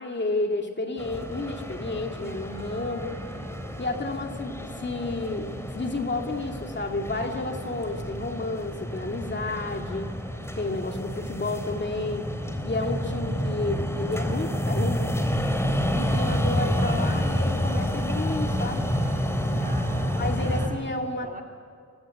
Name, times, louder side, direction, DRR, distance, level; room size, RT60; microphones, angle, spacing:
voice 1, 0.0-3.2 3.8-10.1 10.6-12.3 12.6-15.1 15.9-18.9 20.2-21.4, left 2 dB, 35° left, 3 dB, 2.2 m, -31 dB
sound 1, 1.0-20.7, equal, 10° left, 3.6 m, -29 dB
voice 2, 15.9-16.4 19.6-20.9 21.2-21.4, right 2 dB, 30° right, 6 dB, 3.8 m, -45 dB
25.5 x 18.0 x 8.3 m, 2.1 s
cardioid pair, 70°, 30 cm